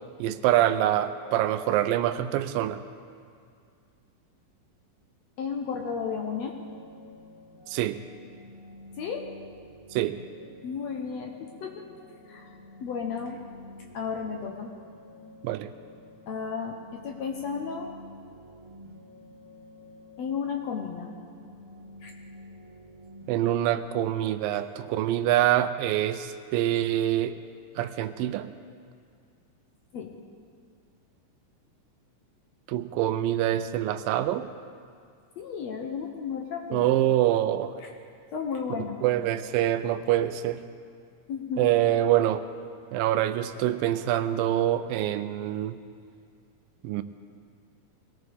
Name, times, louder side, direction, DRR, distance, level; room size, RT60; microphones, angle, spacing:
voice 1, 0.2-2.8 7.7-8.0 9.9-10.2 15.4-15.7 23.3-27.4 27.8-28.5 32.7-34.5 36.7-37.7 39.0-40.6 41.6-42.4 42.9-45.8 46.8-47.0, right 12 dB, 90° right, 11 dB, 2.4 m, -25 dB
voice 2, 5.4-6.6 9.0-9.2 10.6-11.8 12.3-12.5 12.8-13.4 13.9-14.7 16.3-17.9 20.2-21.1 22.0-22.1 29.9-30.1 35.4-36.9 38.3-39.0 41.3-41.6, left 6 dB, 65° left, 1 dB, 1.8 m, -33 dB
sound 1, 5.8-23.3, left 1 dB, 30° right, 1.0 m, -49 dB
22.5 x 17.5 x 3.5 m, 2.3 s
omnidirectional pair, 4.0 m